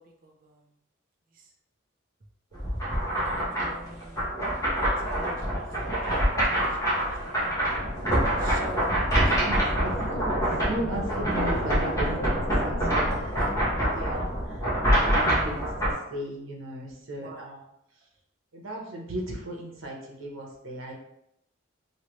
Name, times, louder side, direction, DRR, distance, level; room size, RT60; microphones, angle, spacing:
voice 1, 0.2-0.7 1.3-1.5 3.1-4.3 4.8-6.9 7.2-7.6 8.4-9.5 17.2-17.6, right 1 dB, 45° right, 2 dB, 0.6 m, -45 dB
sound 1, 2.5-15.9, right 1 dB, 15° left, 1.0 m, -26 dB
sound 2, 6.6-15.6, left 1 dB, 35° left, 0.3 m, -37 dB
voice 2, 9.3-10.4 10.6-17.6 18.5-20.9, right 1 dB, 80° right, -1 dB, 0.9 m, -36 dB
3.2 x 2.7 x 3.0 m, 0.80 s
head